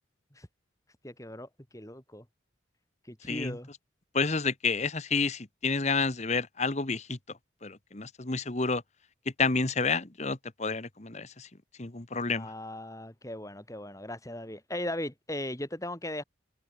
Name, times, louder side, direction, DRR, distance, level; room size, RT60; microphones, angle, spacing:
voice 1, 1.0-2.3 3.1-3.7 12.3-16.2, left 1 dB, 15° left, 3.8 m, -38 dB
voice 2, 4.1-7.2 7.6-8.8 9.4-11.5 11.8-12.5, left 4 dB, 35° left, 1.3 m, -29 dB
head